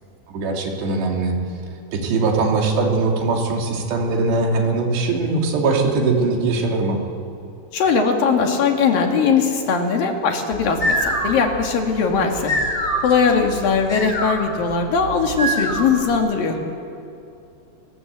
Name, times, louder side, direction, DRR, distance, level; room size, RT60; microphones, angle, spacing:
voice 1, 0.3-1.4 1.9-7.0, right 3 dB, 90° right, 1 dB, 4.9 m, -21 dB
voice 2, 7.7-12.5 13.0-16.6, left 5 dB, 60° left, 3 dB, 3.7 m, -20 dB
sound 1, 10.5-16.1, equal, 20° left, 4.8 m, -25 dB
30.0 x 19.5 x 8.3 m, 2.7 s
omnidirectional pair, 4.7 m